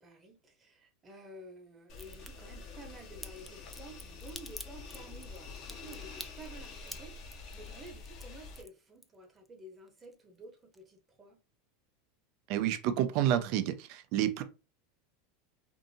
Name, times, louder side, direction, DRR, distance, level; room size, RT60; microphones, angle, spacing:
voice 1, 0.0-11.4, right 1 dB, 30° right, 0.9 m, -52 dB
sound 1, 1.9-8.6, left 4 dB, 50° left, 0.7 m, -47 dB
Crack, 1.9-2.3 3.2-9.5 9.8-10.4 10.7-10.8, right 1 dB, ahead, 0.4 m, -47 dB
voice 2, 12.5-14.4, right 11 dB, 60° right, 0.5 m, -29 dB
2.6 x 2.5 x 2.7 m
hypercardioid pair, 95°, 0 cm